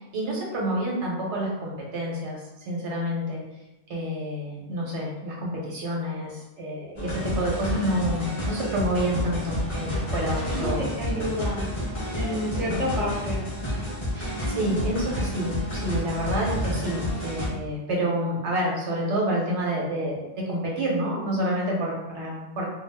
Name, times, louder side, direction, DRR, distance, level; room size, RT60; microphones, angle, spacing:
voice 1, 0.0-3.4 3.9-11.3 12.0-12.3 12.6-12.7 14.1-22.6, equal, 85° right, -2 dB, 1.1 m, -28 dB
sound 1, 7.0-17.5, left 1 dB, 30° left, 0.7 m, -30 dB
voice 2, 10.5-11.7 12.1-13.4, equal, ahead, -4 dB, 0.3 m, -30 dB
2.4 x 2.4 x 3.3 m, 1.0 s
omnidirectional pair, 1.1 m